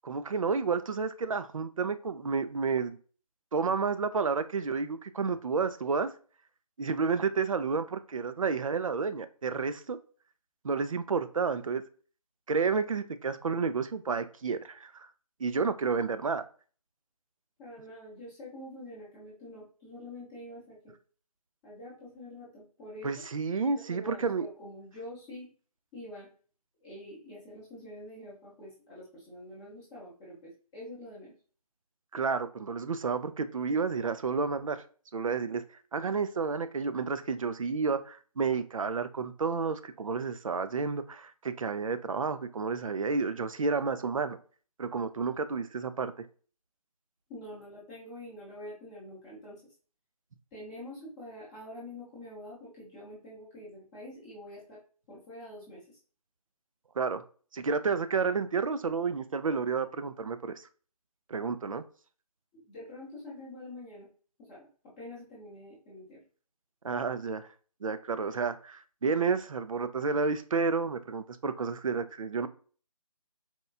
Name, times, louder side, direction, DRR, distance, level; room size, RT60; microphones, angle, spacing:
voice 1, 0.0-3.0 3.5-6.1 6.8-10.0 10.6-11.8 12.5-15.1 15.4-16.4 23.0-24.5 32.1-34.8 35.1-35.6 35.9-44.4 44.8-46.3 57.0-57.2 57.5-60.7 61.3-61.8 66.8-67.5 67.8-72.5, right 5 dB, 60° right, 11 dB, 0.4 m, -30 dB
voice 2, 17.6-20.9 21.6-23.1 23.7-25.5 25.9-26.3 26.8-31.3 47.3-49.6 50.5-54.8 55.1-56.0 62.5-64.1 64.5-66.2, left 1 dB, 10° left, -8 dB, 0.6 m, -46 dB
4.3 x 2.2 x 2.3 m, 0.41 s
figure-of-eight pair, 150°, 20 cm